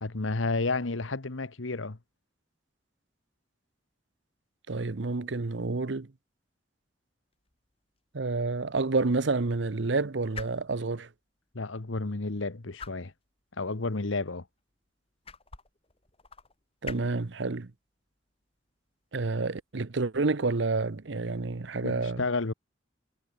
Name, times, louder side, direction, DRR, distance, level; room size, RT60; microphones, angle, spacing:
voice 1, 0.0-2.0 11.5-13.1 13.6-14.5 21.8-22.5, left 3 dB, 90° left, 1.2 m, -31 dB
voice 2, 4.7-6.1 8.1-11.1 16.8-17.7 19.1-22.2, right 3 dB, 70° right, 0.8 m, -29 dB
sound 1, 7.3-20.9, left 5 dB, 30° left, 2.3 m, -51 dB
head